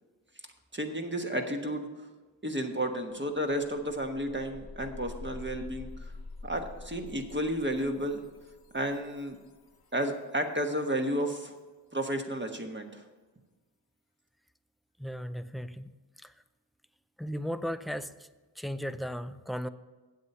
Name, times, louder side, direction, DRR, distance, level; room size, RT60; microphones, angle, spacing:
voice 1, 0.7-1.9 2.4-6.1 6.4-8.2 8.7-9.4 9.9-11.5 11.9-13.0, right 1 dB, 25° right, 4 dB, 1.3 m, -32 dB
sound 1, 2.8-2.9 3.2-10.0, left 3 dB, 55° left, 0.9 m, -47 dB
voice 2, 15.0-15.9 16.2-16.3 17.2-18.1 18.6-19.7, equal, ahead, 12 dB, 0.4 m, -35 dB
8.3 x 7.9 x 5.5 m, 1.3 s
wide cardioid pair, 45°, 43 cm